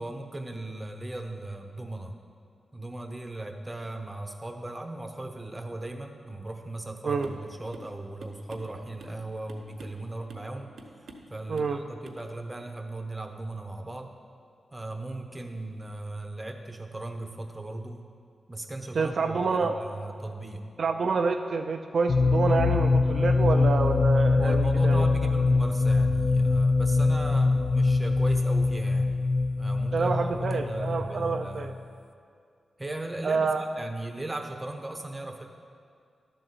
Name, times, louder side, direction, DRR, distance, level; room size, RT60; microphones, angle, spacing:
voice 1, 0.0-2.1 2.7-10.7 11.3-14.1 14.7-18.1 18.5-20.6 24.3-29.1 29.6-31.7 32.8-35.5, right 2 dB, 15° right, 4 dB, 0.8 m, -37 dB
sound 1, 7.2-7.5 7.7-7.9 8.2-9.2 9.5-10.0 10.3-10.5 10.8-11.3 11.6-11.8 12.0-12.2, right 2 dB, 90° right, 0.9 m, -47 dB
voice 2, 11.5-11.8 18.9-19.8 20.8-25.0 29.9-31.7 33.2-33.7, right 4 dB, 60° right, 5 dB, 0.4 m, -27 dB
sound 2, 22.1-31.7, left 3 dB, 60° left, 0.4 m, -23 dB
12.0 x 3.9 x 7.7 m, 2.3 s
wide cardioid pair, 110°, 0 cm